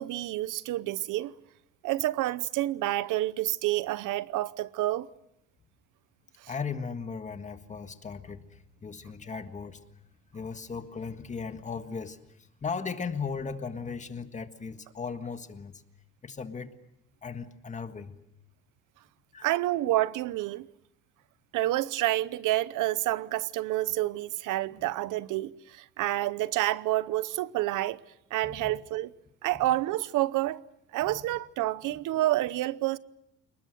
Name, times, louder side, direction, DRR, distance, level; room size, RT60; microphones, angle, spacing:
voice 1, 0.0-1.3 1.8-5.1 19.4-20.7 21.5-28.0 28.3-29.1 29.4-30.6 30.9-33.0, right 16 dB, 80° right, 0.9 m, -28 dB
voice 2, 6.5-9.8 10.3-15.8 16.2-16.7 17.2-18.1 19.3-19.5 24.8-24.9 28.4-28.8 29.5-29.6 31.0-31.2, left 5 dB, 25° left, 1.7 m, -37 dB
29.5 x 20.0 x 7.8 m
cardioid pair, 140°, 31 cm